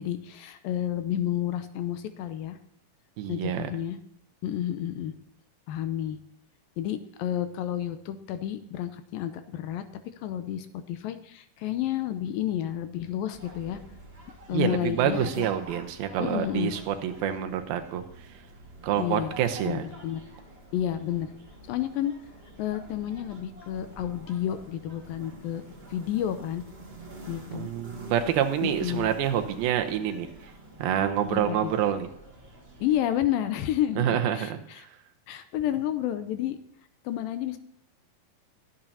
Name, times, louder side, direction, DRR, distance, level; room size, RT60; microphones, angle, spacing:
voice 1, 0.0-2.6 3.3-4.0 4.4-5.1 5.7-6.2 6.8-9.9 10.2-13.8 14.5-15.5 16.2-16.7 19.0-19.3 19.7-20.2 20.7-21.3 21.7-22.1 22.6-25.6 25.9-26.6 27.3-27.7 28.6-29.1 31.3-31.7 32.8-34.9 35.3-36.6 37.1-37.6, left 11 dB, 80° left, 10 dB, 2.3 m, -30 dB
voice 2, 3.2-3.7 14.5-18.0 18.8-19.8 27.5-30.3 30.8-32.1 34.0-34.9, right 10 dB, 85° right, 7 dB, 2.7 m, -27 dB
sound 1, 13.3-33.0, right 1 dB, 30° right, 1.0 m, -47 dB
22.5 x 8.9 x 2.8 m, 0.69 s
omnidirectional pair, 4.3 m